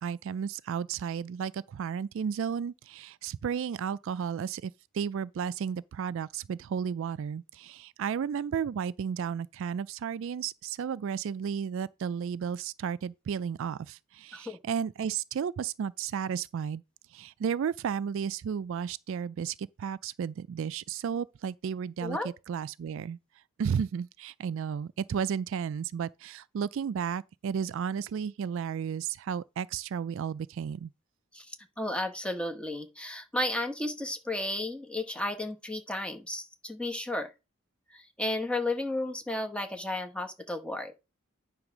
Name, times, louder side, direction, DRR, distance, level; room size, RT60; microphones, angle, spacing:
voice 1, 0.0-16.8 17.1-23.2 23.6-30.9, right 7 dB, 65° right, 0.3 m, -33 dB
voice 2, 22.0-22.3 31.3-37.3 37.9-40.9, left 1 dB, 5° left, 1.0 m, -33 dB
9.7 x 3.4 x 6.0 m
head